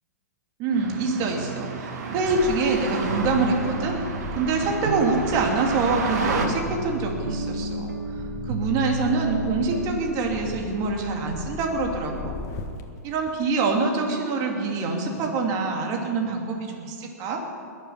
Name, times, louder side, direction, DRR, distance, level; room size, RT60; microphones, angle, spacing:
voice 1, 0.6-4.0 4.3-12.3 13.0-17.4, right 3 dB, 40° right, 1 dB, 2.7 m, -25 dB
sound 1, 0.7-6.5, right 4 dB, 65° right, 2.3 m, -32 dB
sound 2, 1.3-1.4 1.9-2.0 2.5-2.6 3.1-9.9, right 3 dB, 85° right, 1.4 m, -32 dB
sound 3, 2.1-12.8 13.2-13.4, left 3 dB, 30° left, 1.5 m, -38 dB
21.5 x 7.8 x 7.2 m, 2.3 s
hypercardioid pair, 120°, 9 cm